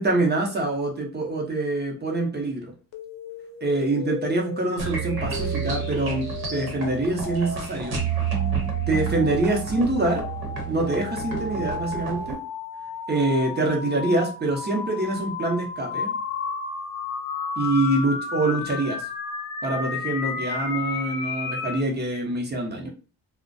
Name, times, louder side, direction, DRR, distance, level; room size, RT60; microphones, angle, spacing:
voice 1, 0.0-2.7 3.6-8.0 8.9-10.2 10.7-12.4 13.1-16.1 17.6-19.0 19.6-22.9, right 2 dB, 25° right, 0 dB, 0.7 m, -25 dB
sound 1, 2.9-21.8, left 5 dB, 60° left, 0.7 m, -34 dB
sound 2, 4.8-12.4, right 7 dB, 70° right, 0.9 m, -30 dB
2.4 x 2.1 x 2.5 m, 0.36 s
cardioid pair, 100°, 38 cm